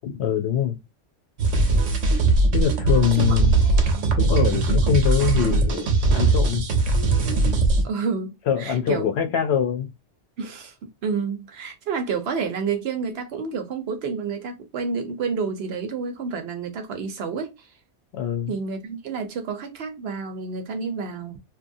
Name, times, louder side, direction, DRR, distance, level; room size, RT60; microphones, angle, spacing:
voice 1, 0.0-0.8 2.5-3.6 4.2-6.7 8.5-9.9 18.1-18.5, left 8 dB, 65° left, 0.8 m, -23 dB
sound 1, 1.4-7.8, right 3 dB, 90° right, 1.1 m, -20 dB
voice 2, 3.1-3.5 4.0-4.2 7.8-9.1 10.4-17.7 18.5-21.4, right 5 dB, 65° right, 0.8 m, -29 dB
2.8 x 2.3 x 2.5 m
omnidirectional pair, 1.2 m